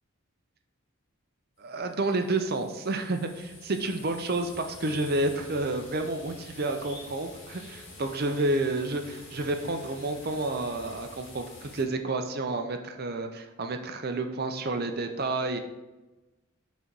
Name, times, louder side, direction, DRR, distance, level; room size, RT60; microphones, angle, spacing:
voice 1, 1.6-15.6, right 2 dB, 45° right, 6 dB, 0.5 m, -30 dB
sound 1, 1.8-11.8, left 2 dB, 60° left, 1.6 m, -47 dB
6.1 x 4.1 x 3.8 m, 1.1 s
head